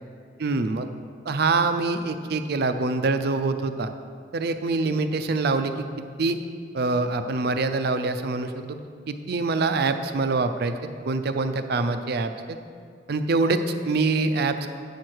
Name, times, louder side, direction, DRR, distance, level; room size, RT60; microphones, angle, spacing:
voice 1, 0.4-0.9 1.3-3.9 4.3-6.4 6.7-8.8 9.1-10.7 11.1-12.6 13.1-14.7, right 3 dB, 60° right, 9 dB, 0.5 m, -25 dB
9.0 x 4.5 x 6.4 m, 2.1 s
head